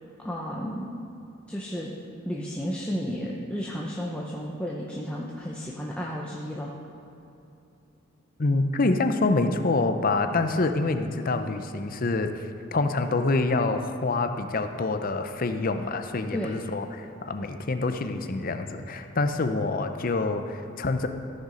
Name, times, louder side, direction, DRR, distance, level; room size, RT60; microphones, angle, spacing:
voice 1, 0.2-0.9 1.5-2.0 2.3-6.7 16.3-16.5, equal, 5° left, -3 dB, 0.7 m, -32 dB
voice 2, 8.4-21.1, left 3 dB, 45° left, 7 dB, 0.6 m, -26 dB
14.5 x 6.6 x 5.0 m, 2.8 s
head